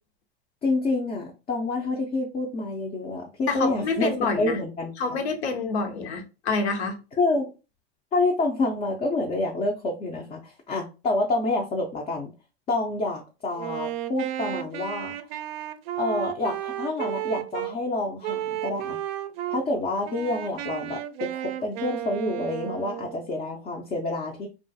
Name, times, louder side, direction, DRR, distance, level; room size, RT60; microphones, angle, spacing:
voice 1, 0.6-4.9 7.1-7.5 8.1-12.3 12.7-15.2 16.0-19.0 19.5-24.5, left 2 dB, 20° left, 0.4 m, -28 dB
voice 2, 3.5-4.6 5.0-7.0, left 4 dB, 85° left, 0.8 m, -27 dB
Wind instrument woodwind instrument, 13.5-17.7 18.2-19.6 20.0-23.3, right 12 dB, 65° right, 0.4 m, -33 dB
2.4 x 2.3 x 2.6 m
supercardioid pair, 120°, 32 cm